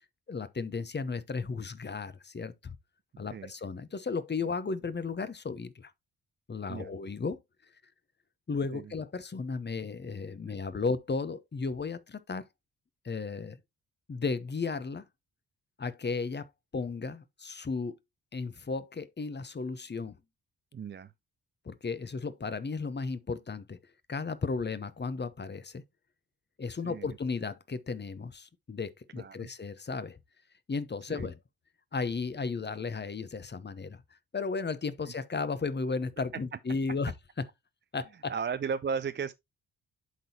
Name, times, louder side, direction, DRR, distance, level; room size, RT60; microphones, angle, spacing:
voice 1, 0.3-2.8 3.2-5.9 6.5-7.4 8.5-12.4 13.0-13.6 14.1-15.0 15.8-17.9 18.3-20.1 21.6-23.8 24.1-25.8 26.6-30.2 30.7-31.4 31.9-34.0 34.3-37.1 37.9-38.3, left 4 dB, 25° left, 0.9 m, -34 dB
voice 2, 20.7-21.1 26.8-27.2 29.1-29.5 31.1-31.3 36.5-36.6 38.3-39.3, right 6 dB, 30° right, 0.5 m, -35 dB
11.0 x 3.9 x 2.9 m
hypercardioid pair, 40°, 40 cm